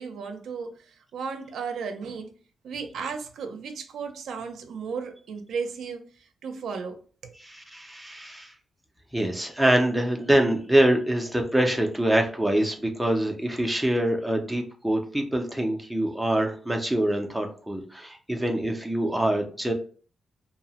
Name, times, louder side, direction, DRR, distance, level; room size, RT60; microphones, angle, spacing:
voice 1, 0.0-2.4 2.6-7.0 7.2-7.3, right 5 dB, 75° right, 0.4 m, -35 dB
voice 2, 7.4-8.5 9.1-19.7, right 1 dB, ahead, 0.4 m, -25 dB
2.7 x 2.0 x 2.8 m
wide cardioid pair, 170°, 0 cm